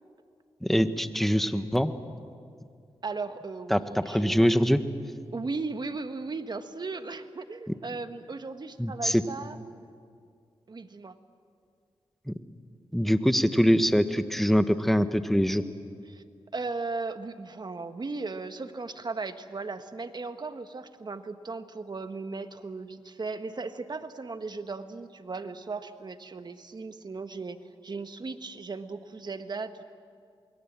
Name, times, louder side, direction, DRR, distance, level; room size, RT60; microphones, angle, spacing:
voice 1, 0.6-1.9 3.7-4.8 8.8-9.2 12.3-12.4 12.9-15.6, equal, ahead, 10 dB, 1.4 m, -23 dB
voice 2, 3.0-4.7 5.3-9.6 10.7-11.2 16.1-16.2 16.5-29.8, right 3 dB, 45° right, 9 dB, 1.5 m, -37 dB
28.0 x 22.0 x 7.5 m, 2.3 s
cardioid pair, 55°, 10 cm